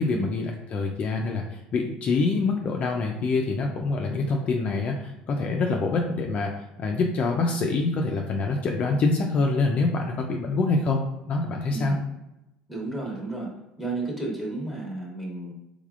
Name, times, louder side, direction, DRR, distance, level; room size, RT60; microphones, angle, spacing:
voice 1, 0.0-6.5 6.8-11.9, left 3 dB, 40° left, 1 dB, 0.4 m, -25 dB
voice 2, 11.7-12.0 12.7-13.5 13.8-15.5, right 2 dB, 5° right, -2 dB, 1.1 m, -32 dB
3.4 x 3.3 x 2.4 m, 0.91 s
supercardioid pair, 115°, 3 cm